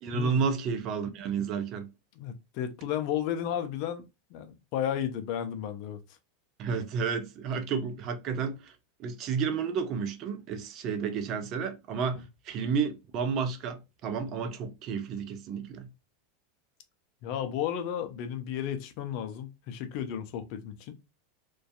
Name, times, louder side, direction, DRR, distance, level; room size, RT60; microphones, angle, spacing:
voice 1, 0.0-1.9 6.6-15.9, right 6 dB, 45° right, 0.5 m, -31 dB
voice 2, 2.2-4.0 4.3-6.0 17.2-21.0, left 10 dB, 55° left, 0.4 m, -33 dB
2.5 x 2.2 x 2.3 m
hypercardioid pair, 110°, 0 cm